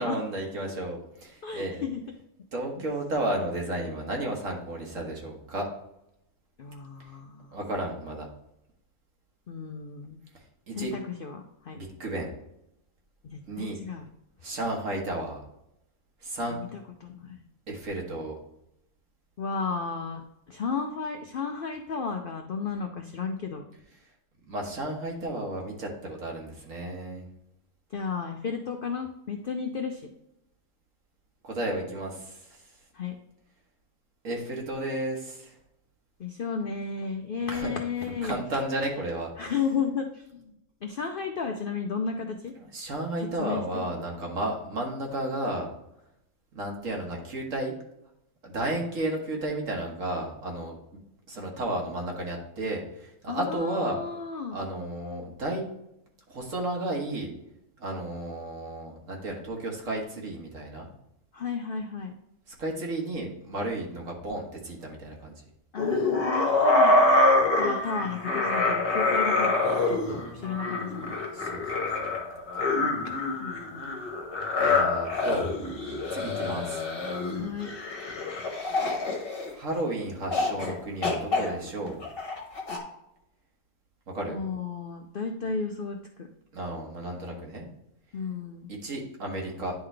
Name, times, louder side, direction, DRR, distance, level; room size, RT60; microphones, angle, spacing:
voice 1, 0.0-1.8 2.5-5.7 7.5-8.3 10.7-10.9 11.7-12.3 13.5-13.8 14.4-15.4 16.2-16.6 17.7-18.4 24.4-27.2 31.4-32.6 34.2-35.5 37.5-37.8 38.2-39.3 42.7-45.7 46.5-47.7 48.4-50.7 51.3-54.0 54.5-55.6 56.3-57.3 57.8-60.9 62.6-65.4 70.1-70.3 71.3-71.8 74.6-75.5 76.1-76.8 79.5-82.0 84.1-84.4 86.5-87.7 88.7-89.7, right 1 dB, 60° right, 0 dB, 1.7 m, -33 dB
voice 2, 1.4-2.0 6.6-7.6 9.5-10.2 10.7-11.8 13.2-14.1 16.5-17.4 19.4-20.2 20.5-23.7 27.9-30.1 32.9-33.2 36.2-38.4 39.4-40.5 40.8-42.5 43.4-43.9 53.3-54.6 61.3-62.1 65.7-67.0 67.6-71.1 73.4-74.0 77.3-77.7 84.3-86.3 88.1-88.7, left 5 dB, 65° left, 4 dB, 0.5 m, -33 dB
sound 1, 65.8-79.8 80.3-80.7 81.0-82.8, left 2 dB, 40° left, 1.5 m, -26 dB
10.0 x 3.8 x 3.3 m, 0.82 s
omnidirectional pair, 1.6 m